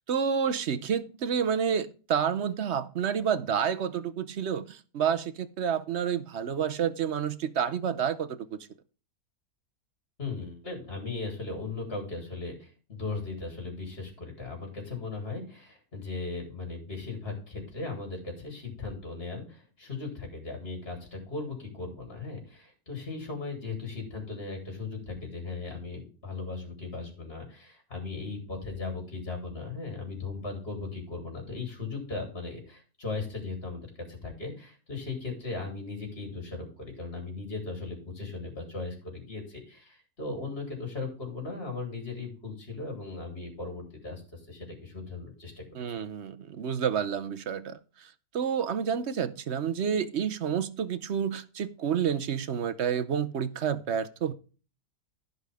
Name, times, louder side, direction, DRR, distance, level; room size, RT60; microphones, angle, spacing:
voice 1, 0.0-8.4 45.7-54.3, right 7 dB, 55° right, 0.9 m, -29 dB
voice 2, 10.2-46.0, left 3 dB, 40° left, 3.7 m, -37 dB
15.5 x 5.6 x 3.5 m
omnidirectional pair, 1.6 m